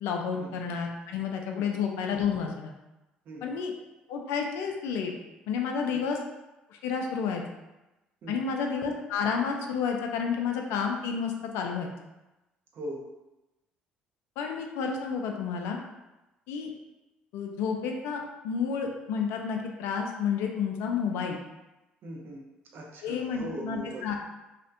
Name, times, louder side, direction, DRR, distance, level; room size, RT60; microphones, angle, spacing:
voice 1, 0.0-2.7 3.4-3.7 4.1-5.1 5.5-6.2 6.7-7.4 8.3-11.9 14.4-15.8 16.5-16.7 17.3-21.4 23.0-24.2, left 6 dB, 70° left, 2 dB, 0.3 m, -30 dB
voice 2, 3.3-3.6 5.9-6.1 8.2-8.5 12.7-13.0 22.0-22.4 22.7-24.1, right 1 dB, 55° right, -1 dB, 0.6 m, -40 dB
2.4 x 2.1 x 2.5 m, 1.0 s
hypercardioid pair, 55°, 4 cm